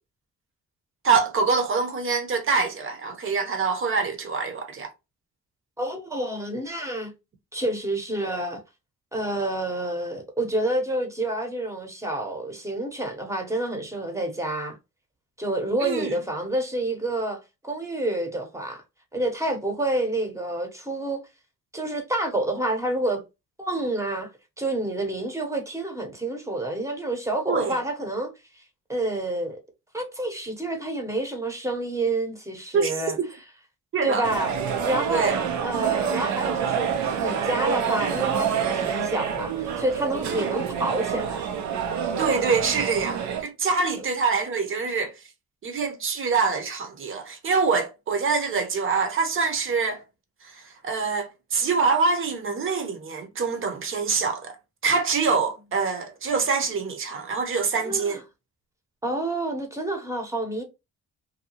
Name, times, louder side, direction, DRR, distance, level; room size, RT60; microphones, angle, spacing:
voice 1, 1.0-4.9 15.8-16.1 27.5-27.8 32.7-32.9 33.2-33.3 33.9-34.3 35.1-35.4 40.3-40.5 42.2-45.1 45.6-50.0 50.4-54.6 54.8-58.2, right 5 dB, 45° right, 0.8 m, -25 dB
voice 2, 5.8-7.1 7.5-8.6 9.1-14.8 15.4-18.8 19.1-21.2 21.7-23.2 23.6-24.3 24.6-28.6 28.9-29.6 29.9-33.2 34.0-34.6 34.8-35.3 35.6-41.5 57.9-58.2 59.0-60.6, right 1 dB, 10° right, 0.8 m, -28 dB
sound 1, 34.2-43.4, right 7 dB, 70° right, 0.5 m, -27 dB
2.7 x 2.2 x 2.8 m
cardioid pair, 90°, 30 cm